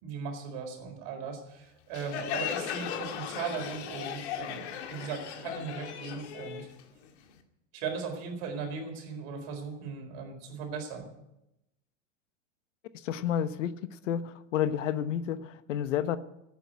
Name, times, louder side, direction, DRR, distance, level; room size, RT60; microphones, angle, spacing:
voice 1, 0.0-6.7 7.7-11.1, right 5 dB, 50° right, 4 dB, 4.4 m, -38 dB
Crowd, 1.9-7.4, left 8 dB, 65° left, 2.1 m, -37 dB
voice 2, 13.0-13.8 14.0-16.2, left 9 dB, 80° left, 13 dB, 1.1 m, -30 dB
13.0 x 9.1 x 9.4 m, 0.88 s
supercardioid pair, 140°, 37 cm